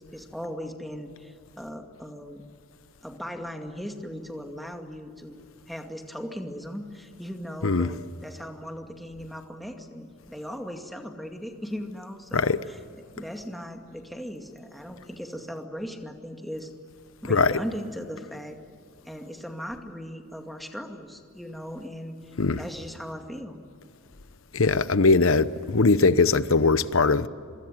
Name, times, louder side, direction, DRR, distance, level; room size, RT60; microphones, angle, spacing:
voice 1, 0.0-2.4 3.0-5.4 5.7-16.7 17.2-18.6 19.1-23.6, equal, ahead, 2.2 m, -38 dB
voice 2, 24.5-27.3, left 3 dB, 65° left, 1.0 m, -20 dB
25.5 x 24.0 x 9.3 m
head